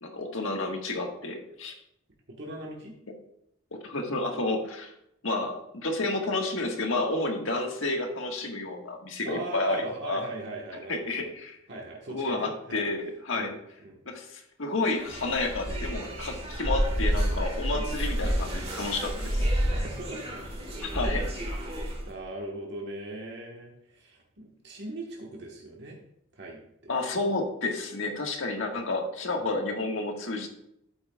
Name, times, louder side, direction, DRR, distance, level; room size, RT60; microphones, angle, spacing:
voice 1, 0.0-1.7 3.8-4.9 5.2-10.2 10.9-11.6 12.1-13.5 14.0-19.5 20.8-21.3 26.9-30.5, left 2 dB, 75° left, 2 dB, 1.5 m, -30 dB
voice 2, 2.3-2.9 9.2-11.3 11.7-12.9 13.3-13.5 13.8-14.0 17.7-17.9 19.7-20.4 21.6-26.0 26.3-26.9, right 2 dB, 55° right, -1 dB, 1.4 m, -40 dB
sound 1, 14.9-22.1, equal, 30° right, 1.7 m, -30 dB
12.0 x 8.6 x 2.3 m, 0.77 s
head